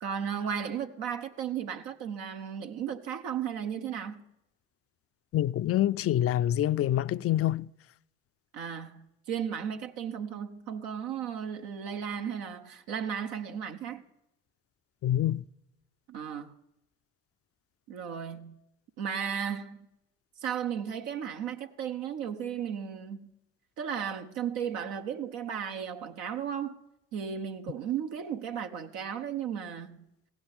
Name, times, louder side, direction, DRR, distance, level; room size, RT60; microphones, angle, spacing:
voice 1, 0.0-4.2 8.5-14.0 16.1-16.5 17.9-18.6 19.0-19.9 20.4-23.3 23.8-26.8 27.1-30.0, right 8 dB, 75° right, 0.9 m, -35 dB
voice 2, 5.3-7.7 15.0-15.4, left 12 dB, 40° left, 0.4 m, -26 dB
16.0 x 6.1 x 9.7 m
hypercardioid pair, 50°, 36 cm